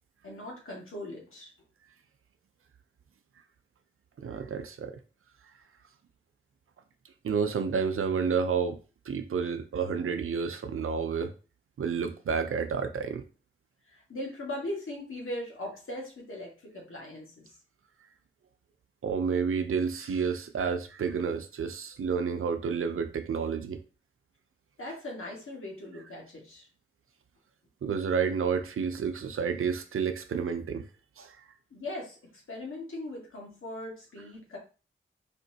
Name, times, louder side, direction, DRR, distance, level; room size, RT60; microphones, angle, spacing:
voice 1, 0.2-1.5 13.9-17.5 24.8-26.7 31.7-34.6, left 1 dB, 75° left, 1.7 m, -39 dB
voice 2, 4.2-5.0 7.2-8.8 9.1-11.3 11.8-13.2 19.0-23.8 27.8-30.9 31.2-31.4, right 6 dB, 85° right, 0.5 m, -30 dB
4.3 x 2.9 x 2.8 m
wide cardioid pair, 65°, 21 cm